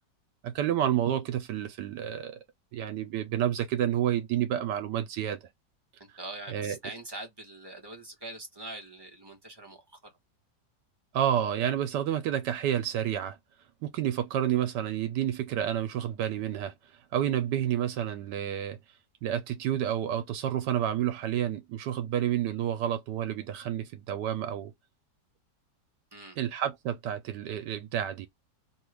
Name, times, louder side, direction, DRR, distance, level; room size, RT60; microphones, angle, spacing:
voice 1, 0.4-2.3 2.7-5.4 6.5-6.8 11.1-13.4 13.8-16.7 17.1-18.8 19.2-24.7 26.4-28.3, right 10 dB, 80° right, 1.2 m, -29 dB
voice 2, 6.0-10.0 26.1-26.4, right 2 dB, 20° right, 0.7 m, -43 dB
3.1 x 2.3 x 3.3 m
omnidirectional pair, 1.8 m